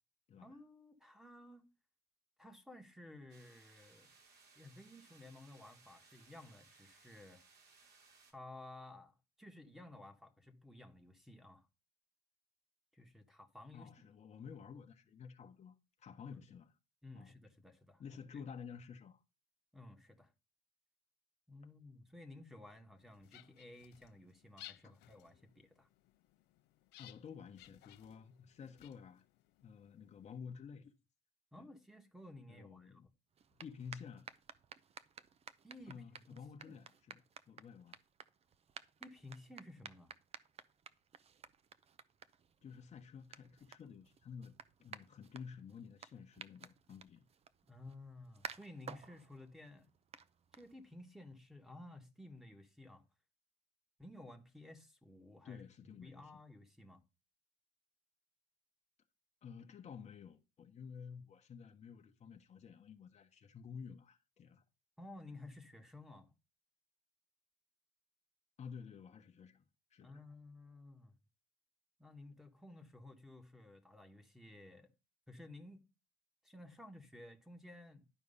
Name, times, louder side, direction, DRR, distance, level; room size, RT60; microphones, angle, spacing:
voice 1, 0.3-1.7 2.4-4.1 4.5-7.4 8.3-11.7 12.9-14.1 16.3-16.4 17.0-18.0 18.3-18.4 19.7-20.3 21.5-25.9 31.5-33.0 35.6-36.0 36.3-36.8 39.0-40.1 47.7-49.9 50.5-53.0 54.0-55.6 56.0-57.0 65.0-66.3 70.0-71.2 72.0-74.9 75.3-75.8 76.4-78.1, left 2 dB, ahead, 1.3 m, -55 dB
sound 1, 3.3-8.3, right 4 dB, 70° right, 2.9 m, -65 dB
voice 2, 13.7-16.7 17.1-17.3 18.0-19.2 27.0-29.2 29.6-30.9 31.6-31.7 32.5-33.1 33.6-34.3 35.9-37.2 37.5-38.0 42.6-44.5 44.8-47.3 55.4-56.4 59.4-64.6 68.6-70.2, left 6 dB, 40° left, 1.1 m, -52 dB
sound 2, 23.0-30.4, left 15 dB, 85° left, 0.6 m, -61 dB
sound 3, 33.3-51.1, right 7 dB, 35° right, 0.6 m, -55 dB
11.0 x 4.6 x 5.5 m
cardioid pair, 110°, 17 cm